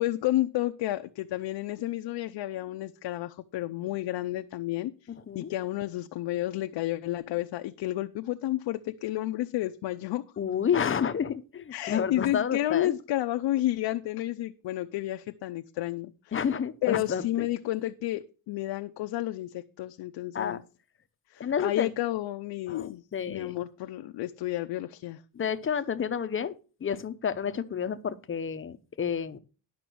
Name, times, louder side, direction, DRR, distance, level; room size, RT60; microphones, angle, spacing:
voice 1, 0.0-10.2 11.7-16.3 16.8-20.6 21.3-25.2, left 15 dB, 70° left, 7 dB, 0.7 m, -31 dB
voice 2, 10.4-13.0 16.3-17.5 20.3-20.6 21.4-21.9 22.7-23.5 25.3-26.5 26.8-29.4, left 7 dB, 30° left, 11 dB, 0.7 m, -30 dB
11.0 x 6.0 x 6.1 m, 0.35 s
cardioid pair, 150°, 44 cm